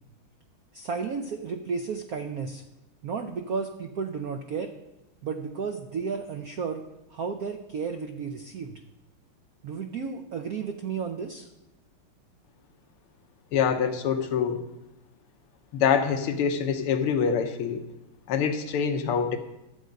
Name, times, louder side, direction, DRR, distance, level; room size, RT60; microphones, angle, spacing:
voice 1, 0.7-2.6 3.0-4.7 5.2-6.8 7.1-8.8 9.6-11.5, right 5 dB, 75° right, 6 dB, 0.8 m, -33 dB
voice 2, 13.5-14.6 15.7-17.8 18.3-19.4, left 7 dB, 80° left, 7 dB, 1.8 m, -25 dB
12.0 x 7.7 x 5.2 m, 0.94 s
omnidirectional pair, 2.4 m